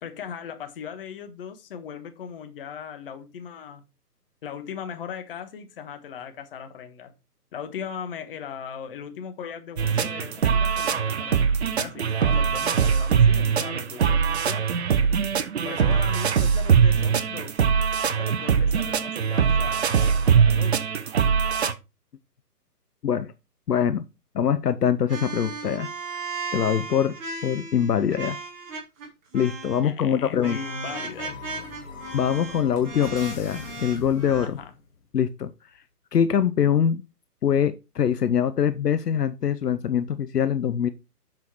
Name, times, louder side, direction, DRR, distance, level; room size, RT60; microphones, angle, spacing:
voice 1, 0.0-3.8 4.4-7.1 7.5-11.4 11.8-14.7 15.6-17.6 18.1-20.9 29.8-31.4 34.4-34.7, left 7 dB, 35° left, 1.4 m, -38 dB
sound 1, 9.8-21.7, right 6 dB, 40° right, 0.8 m, -22 dB
voice 2, 23.7-24.0 24.3-25.9 26.5-27.2 27.4-28.4 29.3-30.6 32.1-34.6 35.1-35.5 36.1-37.0 37.4-40.9, left 8 dB, 75° left, 0.8 m, -23 dB
sound 2, 25.1-29.1 29.3-29.9 30.4-34.5, right 4 dB, 15° right, 1.8 m, -36 dB
sound 3, 30.1-35.1, left 6 dB, 55° left, 2.5 m, -42 dB
7.5 x 5.6 x 4.5 m
hypercardioid pair, 150°, 48 cm